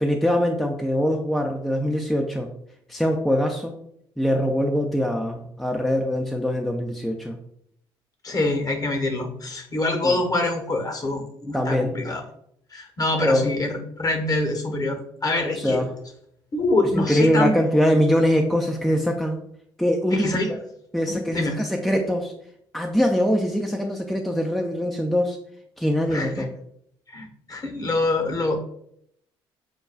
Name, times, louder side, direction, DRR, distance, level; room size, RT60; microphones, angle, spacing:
voice 1, 0.0-2.5 2.9-3.7 4.2-7.4 10.0-10.2 11.5-12.0 13.2-13.5 15.6-15.9 17.0-19.4 19.8-20.6 20.9-22.3 22.7-25.4 25.8-26.5, equal, ahead, 2 dB, 0.5 m, -23 dB
voice 2, 8.2-12.2 12.7-15.8 16.5-17.6 20.1-20.5 21.1-21.5 26.1-26.5 27.1-28.6, left 2 dB, 35° left, 4 dB, 1.1 m, -25 dB
6.6 x 2.2 x 2.4 m, 0.71 s
hypercardioid pair, 55°, 12 cm